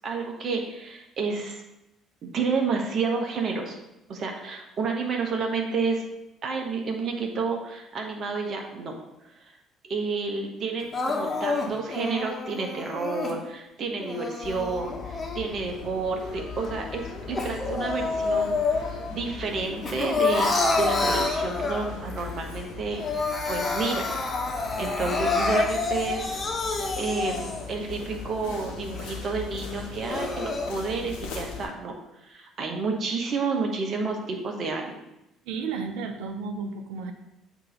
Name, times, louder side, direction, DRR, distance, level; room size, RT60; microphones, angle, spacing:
voice 1, 0.0-1.6 2.3-3.8 4.1-6.0 6.4-9.3 9.8-18.5 19.1-24.1 24.8-26.4 27.0-31.9 32.2-35.0, right 4 dB, 50° right, 2 dB, 1.3 m, -30 dB
Crying sobbing, 10.9-13.4 14.0-15.8 16.2-19.1 19.5-22.1 22.5-22.6 22.9-27.8 28.3-28.4 29.0-29.1 29.8-30.7, left 3 dB, 25° left, 1.3 m, -28 dB
sound 1, 14.4-31.7, left 5 dB, 70° left, 1.0 m, -39 dB
voice 2, 35.4-37.1, right 5 dB, 65° right, 6 dB, 0.7 m, -33 dB
7.5 x 3.0 x 5.4 m, 0.92 s
figure-of-eight pair, 50°, 0 cm